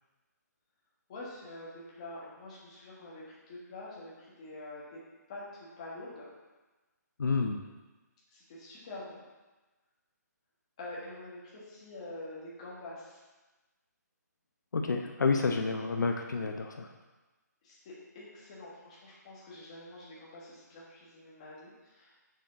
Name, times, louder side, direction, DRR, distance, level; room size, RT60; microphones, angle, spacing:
voice 1, 1.1-5.0 5.3-6.3 8.3-9.2 10.8-13.2 15.6-16.0 17.6-22.1, left 2 dB, 20° left, -7 dB, 1.6 m, -46 dB
voice 2, 7.2-7.6 14.7-16.9, left 4 dB, 80° left, 4 dB, 0.8 m, -29 dB
6.7 x 6.2 x 3.9 m, 1.2 s
hypercardioid pair, 175°, 10 cm